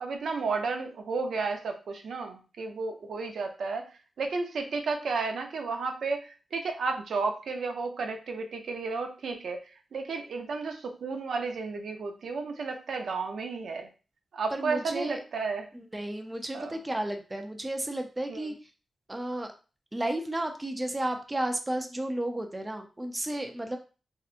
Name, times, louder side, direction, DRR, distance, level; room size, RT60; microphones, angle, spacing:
voice 1, 0.0-3.8 4.2-6.2 6.5-9.6 9.9-13.9 14.3-15.7 16.5-16.7 18.3-18.5, right 4 dB, 75° right, 4 dB, 0.5 m, -32 dB
voice 2, 14.5-15.2 15.7-18.5 19.1-19.5 19.9-23.8, right 1 dB, 15° right, 4 dB, 0.4 m, -33 dB
3.3 x 2.7 x 2.4 m, 0.34 s
wide cardioid pair, 115°, 0 cm